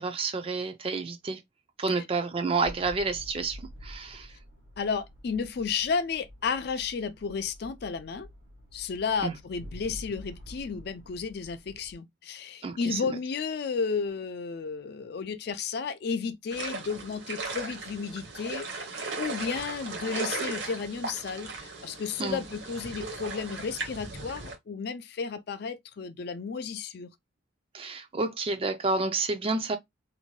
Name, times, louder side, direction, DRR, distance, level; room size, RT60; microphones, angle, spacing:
voice 1, 0.0-1.4 1.8-4.4 9.2-9.3 12.6-13.0 22.2-22.4 27.7-29.8, right 3 dB, 30° right, 0.4 m, -30 dB
sound 1, 2.6-11.9, equal, 80° right, 1.1 m, -48 dB
voice 2, 4.8-8.3 8.7-18.9 19.2-27.1, left 5 dB, 55° left, 0.4 m, -33 dB
sound 2, 16.5-24.6, right 3 dB, 60° right, 0.8 m, -37 dB
2.6 x 2.2 x 3.0 m
head